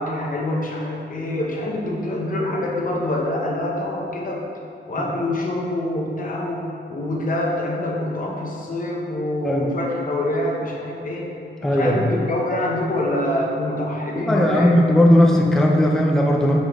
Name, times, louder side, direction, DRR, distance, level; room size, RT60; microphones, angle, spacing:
voice 1, 0.0-4.4 4.9-11.3 11.6-14.8, left 1 dB, 45° left, -2 dB, 0.9 m, -25 dB
voice 2, 11.6-12.1 14.1-16.6, left 1 dB, ahead, -1 dB, 0.4 m, -17 dB
5.4 x 5.2 x 3.5 m, 2.5 s
wide cardioid pair, 165°, 19 cm